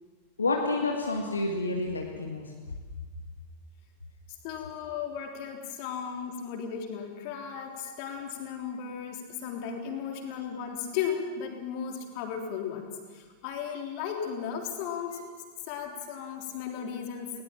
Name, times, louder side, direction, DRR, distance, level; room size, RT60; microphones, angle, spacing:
voice 1, 0.4-2.5, left 2 dB, 75° left, 1 dB, 2.0 m, -29 dB
voice 2, 4.4-17.4, left 7 dB, 45° left, 2 dB, 3.5 m, -35 dB
20.5 x 19.0 x 7.5 m, 1.5 s
figure-of-eight pair, 90°, 0 cm